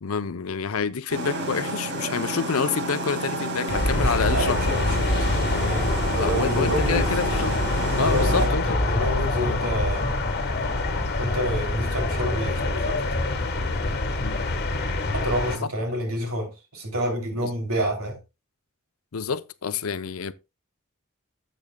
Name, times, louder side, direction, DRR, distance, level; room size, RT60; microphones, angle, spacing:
voice 1, 0.0-4.6 6.2-7.6 8.0-8.8 9.4-9.7 14.2-14.4 17.4-17.5 19.1-20.3, left 6 dB, 75° left, 0.6 m, -28 dB
sound 1, 1.1-8.5, right 2 dB, 55° right, 2.0 m, -30 dB
sound 2, 3.7-15.6, left 2 dB, 50° left, 1.4 m, -25 dB
voice 2, 4.0-7.1 8.0-10.1 11.2-13.1 15.1-18.2, equal, 80° right, 2.9 m, -29 dB
12.5 x 7.8 x 2.2 m
head